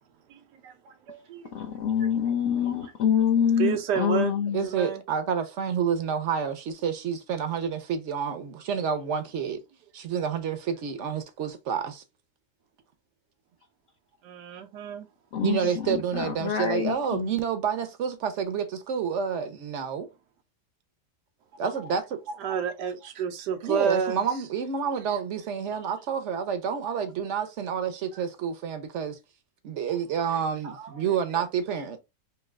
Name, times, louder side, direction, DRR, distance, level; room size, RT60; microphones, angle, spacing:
voice 1, 0.3-1.5 2.0-2.1 3.6-4.3 4.6-5.0 14.2-15.1 22.3-24.2 28.1-28.2 30.6-31.0 31.3-31.4, right 7 dB, 90° right, 1.3 m, -30 dB
voice 2, 1.5-4.7 15.3-17.3, left 8 dB, 60° left, 0.9 m, -26 dB
voice 3, 4.5-9.6 9.9-12.0 15.4-20.1 21.6-22.2 23.6-29.2 29.6-32.0, right 7 dB, 60° right, 0.8 m, -29 dB
3.2 x 2.9 x 3.5 m
omnidirectional pair, 1.8 m